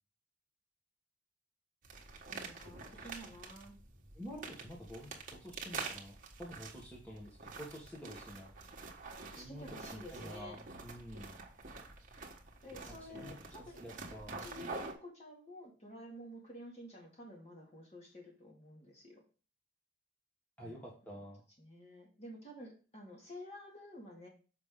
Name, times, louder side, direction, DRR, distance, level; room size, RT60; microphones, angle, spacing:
sound 1, 1.8-14.9, right 4 dB, 40° right, 1.3 m, -47 dB
voice 1, 2.3-3.8 9.3-10.6 12.6-13.8 14.4-19.2 20.6-20.8 21.6-24.3, equal, 35° left, -1 dB, 2.2 m, -51 dB
voice 2, 4.1-8.5 9.4-11.3 12.8-14.4 20.6-21.4, equal, 10° left, -3 dB, 1.3 m, -49 dB
6.8 x 5.1 x 3.7 m, 0.36 s
head